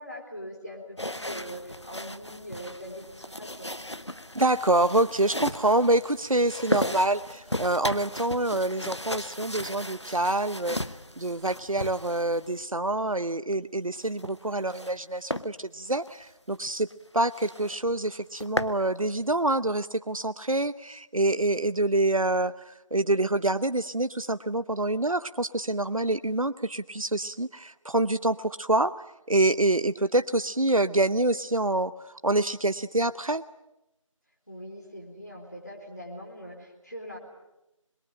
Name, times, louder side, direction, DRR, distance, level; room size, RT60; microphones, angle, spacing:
voice 1, 0.0-3.7 34.5-37.2, equal, 30° left, -1 dB, 3.9 m, -42 dB
sound 1, 1.0-12.6 13.9-15.0 15.3-15.5 16.0-16.1 16.5-16.6 16.9-17.0 17.3-17.8 18.1-18.8, left 1 dB, 55° left, 1.1 m, -36 dB
voice 2, 4.3-10.8 11.2-16.9 17.1-28.9 29.3-33.4, right 2 dB, 85° right, 12 dB, 0.9 m, -26 dB
27.0 x 22.0 x 8.9 m, 0.92 s
figure-of-eight pair, 180°, 17 cm